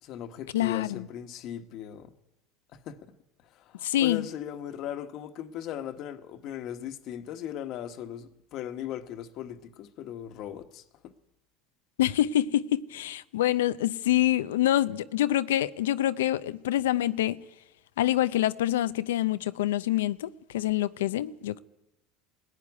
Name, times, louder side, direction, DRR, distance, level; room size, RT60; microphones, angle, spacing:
voice 1, 0.0-2.2 2.7-3.1 3.4-11.1, left 10 dB, 55° left, 1.4 m, -38 dB
voice 2, 0.5-1.1 3.8-4.3 12.0-17.4 18.0-21.6, left 13 dB, 85° left, 0.6 m, -26 dB
20.0 x 15.0 x 9.7 m
hypercardioid pair, 90°, 0 cm